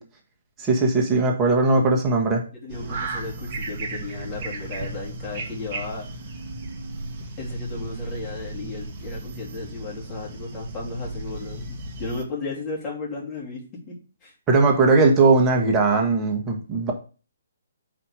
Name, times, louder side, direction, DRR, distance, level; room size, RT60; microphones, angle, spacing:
voice 1, 0.6-2.4 14.5-16.9, right 3 dB, 20° right, 2 dB, 1.5 m, -19 dB
voice 2, 2.5-6.0 7.4-13.9 14.2-14.3, left 3 dB, 25° left, -4 dB, 2.9 m, -34 dB
sound 1, 2.7-12.2, right 2 dB, 35° right, 1.2 m, -35 dB
5.0 x 4.4 x 5.0 m, 0.35 s
figure-of-eight pair, 135°, 0 cm